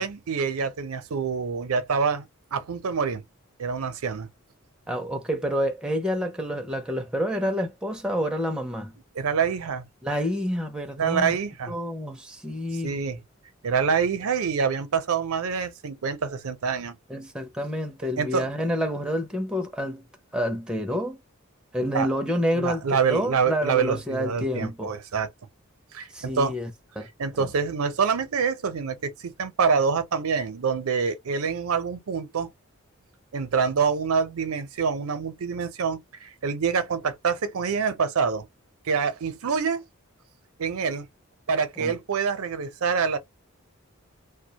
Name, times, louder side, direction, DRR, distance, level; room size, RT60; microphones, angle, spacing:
voice 1, 0.0-3.2 3.6-4.3 9.2-9.9 11.0-11.8 12.8-13.2 13.6-17.0 18.2-18.5 21.9-22.1 22.5-25.3 25.9-26.5 27.2-32.5 33.3-38.5 38.9-39.8 40.6-41.1 41.5-43.2, right 6 dB, 80° right, 0.5 m, -26 dB
voice 2, 4.9-9.0 10.0-11.4 11.7-13.0 17.1-20.1 20.3-21.2 21.7-24.9 26.1-26.7 27.0-27.1 27.4-27.5 41.8-41.9, equal, 5° right, 0.5 m, -28 dB
2.3 x 2.2 x 2.7 m
head